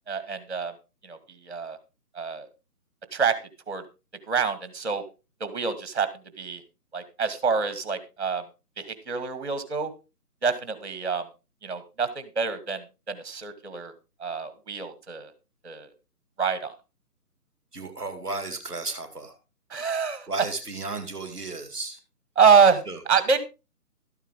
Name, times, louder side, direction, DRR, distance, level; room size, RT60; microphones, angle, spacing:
voice 1, 0.1-0.7 1.0-1.2 1.4-1.8 2.1-2.5 3.1-3.3 3.7-3.8 4.3-5.0 5.4-6.1 6.4-6.6 6.9-8.4 8.8-9.9 10.4-11.2 11.6-13.9 14.2-15.3 15.6-15.9 16.4-16.7 19.7-20.3 22.4-22.8 23.1-23.4, right 6 dB, 45° right, 12 dB, 1.6 m, -25 dB
voice 2, 17.7-19.4 20.3-22.0 22.8-23.0, right 3 dB, 5° left, -16 dB, 0.9 m, -34 dB
13.0 x 8.9 x 3.6 m, 0.29 s
figure-of-eight pair, 160°, 47 cm